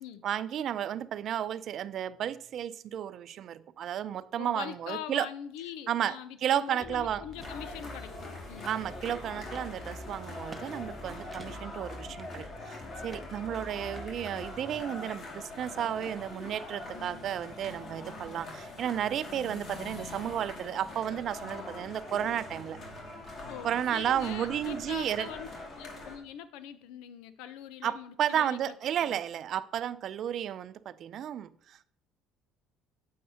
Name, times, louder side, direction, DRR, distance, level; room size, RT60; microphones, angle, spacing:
voice 1, 0.2-5.3 5.9-7.2 8.6-22.8 23.6-25.3 27.8-31.8, right 10 dB, 55° right, 16 dB, 0.4 m, -33 dB
voice 2, 4.4-8.7 23.5-25.5 25.8-28.7 29.1-29.2, left 10 dB, 75° left, 13 dB, 0.6 m, -43 dB
sound 1, 6.5-6.7 7.1-7.5 8.1-9.0 9.5-9.7 10.3-10.7 10.9-11.0 11.3-11.8 12.2-12.8 13.1-13.5 13.9-14.7, right 3 dB, 25° right, 0.7 m, -52 dB
sound 2, 6.8-14.8, left 1 dB, 5° left, 0.4 m, -47 dB
sound 3, 7.4-26.2, left 2 dB, 45° left, 2.3 m, -43 dB
9.2 x 7.4 x 2.8 m, 0.64 s
hypercardioid pair, 65°, 0 cm